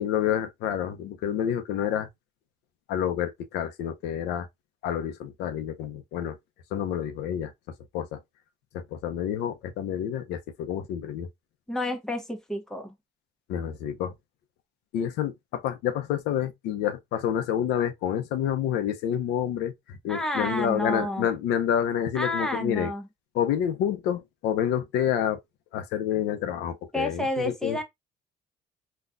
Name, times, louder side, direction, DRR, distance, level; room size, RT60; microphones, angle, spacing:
voice 1, 0.0-2.1 2.9-4.5 4.8-6.4 6.7-7.5 7.9-8.2 8.7-11.3 13.5-14.1 14.9-22.9 23.3-25.4 25.7-27.8, left 9 dB, 90° left, 0.7 m, -28 dB
voice 2, 11.7-12.9 20.1-21.3 22.1-23.1 26.9-27.8, left 1 dB, 5° left, 0.9 m, -30 dB
4.0 x 2.4 x 2.5 m
cardioid pair, 110°, 17 cm